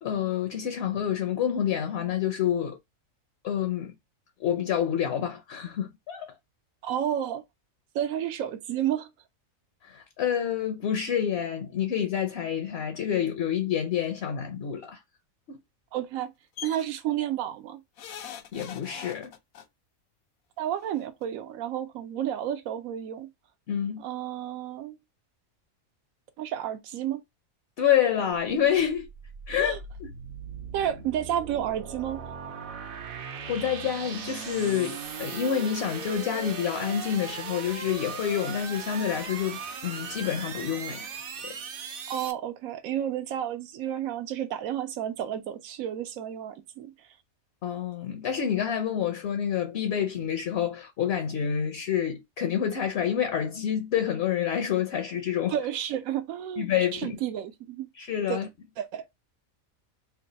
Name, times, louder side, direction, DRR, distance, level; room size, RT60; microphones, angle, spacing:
voice 1, 0.0-2.8 3.4-3.9 4.4-6.3 9.8-15.0 15.5-15.6 18.5-19.3 23.7-24.0 27.8-29.1 29.5-30.1 30.8-30.9 33.5-41.1 41.4-41.5 47.6-55.6 56.6-57.2 57.9-58.5, left 9 dB, 60° left, 0.7 m, -28 dB
voice 2, 6.8-7.4 7.9-9.1 15.9-16.3 16.6-17.8 20.6-23.3 24.0-25.0 26.4-27.2 29.6-29.8 30.7-32.2 42.1-46.9 55.5-56.7 56.9-57.9 58.3-58.4 58.8-59.1, right 10 dB, 80° right, 1.0 m, -31 dB
sound 1, 16.6-16.8 18.0-19.6 20.8-20.9 21.2-21.3, left 9 dB, 85° left, 1.1 m, -41 dB
sound 2, 28.3-42.3, right 6 dB, 55° right, 0.6 m, -39 dB
3.3 x 2.2 x 3.9 m
omnidirectional pair, 1.4 m